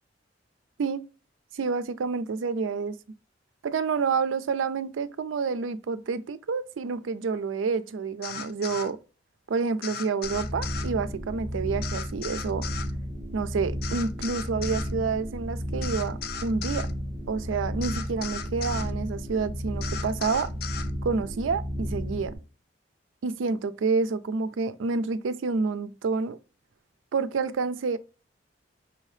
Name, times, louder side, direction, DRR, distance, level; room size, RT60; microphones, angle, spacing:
voice 1, 1.5-3.0 3.6-9.0 9.5-12.7 13.3-16.9 17.3-20.5 21.0-22.3 23.2-26.4 27.1-28.0, right 4 dB, 90° right, 0.4 m, -28 dB
sound 1, 8.2-8.9 9.8-10.9 11.8-12.9 13.8-14.9 15.8-16.9 17.8-18.9 19.8-20.9, left 7 dB, 55° left, 0.4 m, -37 dB
sound 2, 10.2-22.3, equal, 10° left, 1.3 m, -33 dB
5.5 x 2.7 x 3.2 m
head